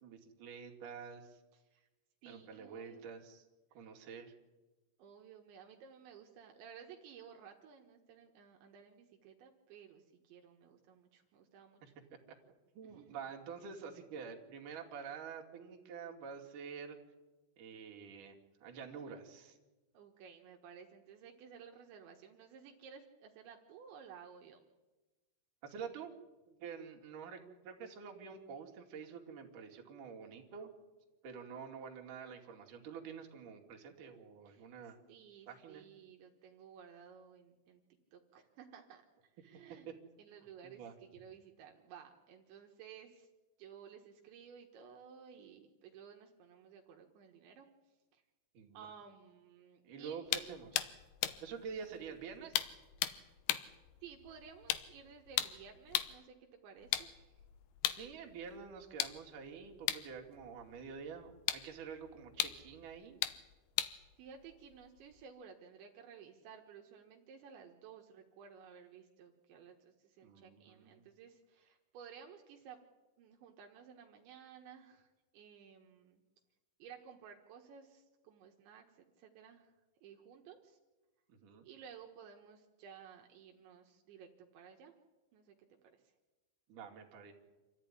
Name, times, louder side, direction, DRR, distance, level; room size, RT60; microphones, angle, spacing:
voice 1, 0.0-1.4 2.3-3.4 3.7-4.3 12.8-17.0 17.6-19.6 25.6-26.1 26.5-30.7 31.2-35.0 35.5-35.8 39.9-40.0 40.6-40.9 48.5-48.9 49.8-50.9 51.4-52.6 57.9-63.2 70.2-71.1 81.3-81.7 86.7-87.3, right 6 dB, 50° right, 1 dB, 3.6 m, -48 dB
voice 2, 1.5-1.9 2.2-3.1 3.7-3.9 5.0-11.9 12.8-13.2 19.9-24.6 34.5-34.7 35.1-37.8 38.1-39.9 40.2-43.3 43.6-47.7 48.1-48.2 48.7-50.3 54.0-57.4 64.2-72.8 73.2-76.2 76.8-79.7 80.0-80.8 81.6-84.9 85.3-85.6 85.8-86.0, right 7 dB, 75° right, 2 dB, 3.7 m, -56 dB
sound 1, 50.3-56.2 56.8-65.2, left 13 dB, 75° left, 2.6 m, -40 dB
27.5 x 14.0 x 9.9 m, 1.2 s
omnidirectional pair, 5.5 m